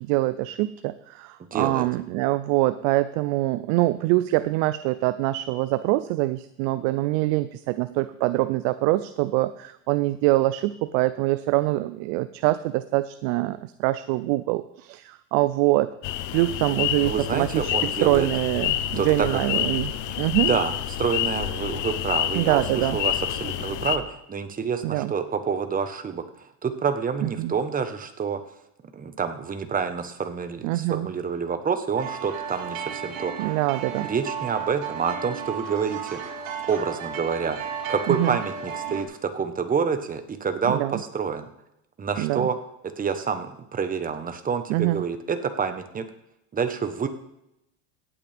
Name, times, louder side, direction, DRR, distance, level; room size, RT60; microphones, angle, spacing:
voice 1, 0.1-15.9 16.3-19.9 20.2-20.5 22.3-23.0 24.8-25.1 27.2-27.5 30.6-31.1 33.4-34.1 38.1-38.4 40.7-41.0 42.2-42.5 44.7-45.0, right 18 dB, 60° right, 14 dB, 0.6 m, -24 dB
voice 2, 1.5-1.9 16.7-18.3 19.0-19.7 20.5-26.2 26.6-28.4 28.9-33.3 34.1-36.2 36.7-41.5 42.0-42.6 43.0-46.0 46.5-47.1, right 6 dB, 20° right, 8 dB, 1.2 m, -28 dB
sound 1, 16.0-24.0, left 12 dB, 50° left, 0.9 m, -28 dB
sound 2, 32.0-39.0, right 7 dB, 85° right, 2.7 m, -34 dB
17.0 x 8.6 x 3.5 m, 0.84 s
supercardioid pair, 110°, 39 cm